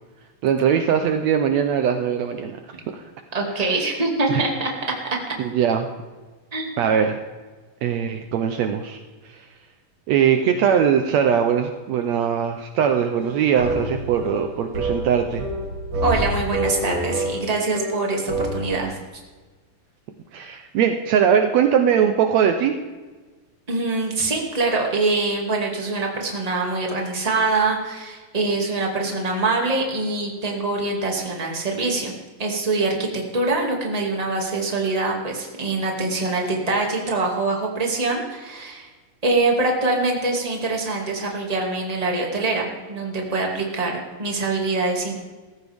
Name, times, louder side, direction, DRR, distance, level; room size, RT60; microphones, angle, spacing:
voice 1, 0.4-2.6 2.9-3.0 3.7-3.8 4.3-4.4 5.4-5.9 6.8-7.2 7.8-9.0 9.2-9.5 10.1-15.5 20.3-22.8, right 8 dB, 90° right, 6 dB, 1.5 m, -21 dB
voice 2, 3.3-4.7 6.5-6.9 16.0-19.0 23.7-32.1 32.4-38.9 39.2-45.2, right 3 dB, 15° right, 0 dB, 1.6 m, -24 dB
sound 1, 13.2-18.7, right 1 dB, 30° right, 5.1 m, -28 dB
18.0 x 14.5 x 3.5 m, 1.3 s
omnidirectional pair, 4.1 m